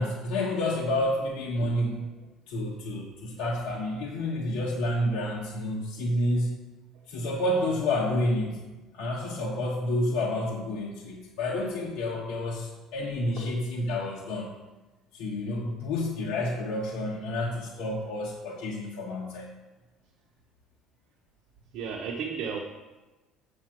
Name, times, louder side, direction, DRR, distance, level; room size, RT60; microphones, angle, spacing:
voice 1, 0.0-2.1 2.5-6.5 7.1-8.6 8.9-14.5 15.1-19.5, left 1 dB, 75° left, -4 dB, 1.5 m, -29 dB
voice 2, 21.7-22.6, right 6 dB, 55° right, 1 dB, 1.0 m, -33 dB
8.5 x 6.3 x 6.0 m, 1.2 s
cardioid pair, 170°, 0 cm